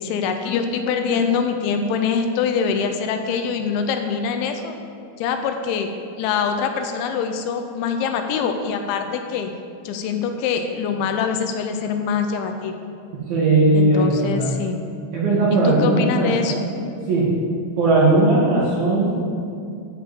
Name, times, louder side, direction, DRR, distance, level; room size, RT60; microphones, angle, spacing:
voice 1, 0.0-4.7 5.2-5.9 6.2-9.5 9.9-12.8 13.7-14.8 15.5-16.6, left 6 dB, 80° left, 6 dB, 2.8 m, -24 dB
voice 2, 13.3-14.5 15.1-16.8 17.1-17.3 17.8-19.2, right 2 dB, 60° right, -7 dB, 3.0 m, -18 dB
11.0 x 5.0 x 7.5 m, 2.4 s
omnidirectional pair, 5.8 m